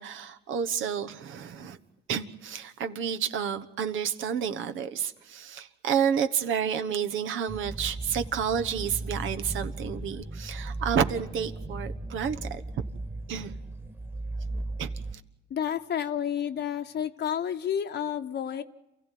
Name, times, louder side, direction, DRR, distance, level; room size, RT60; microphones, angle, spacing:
voice 1, 0.0-1.8 2.1-12.6 13.3-13.5 14.8-14.9, right 7 dB, 80° right, 9 dB, 1.3 m, -30 dB
sound 1, 7.5-15.1, right 2 dB, 10° right, 1.5 m, -36 dB
voice 2, 15.5-18.6, left 9 dB, 60° left, 5 dB, 1.0 m, -30 dB
28.0 x 15.0 x 9.3 m, 0.97 s
cardioid pair, 90°, 20 cm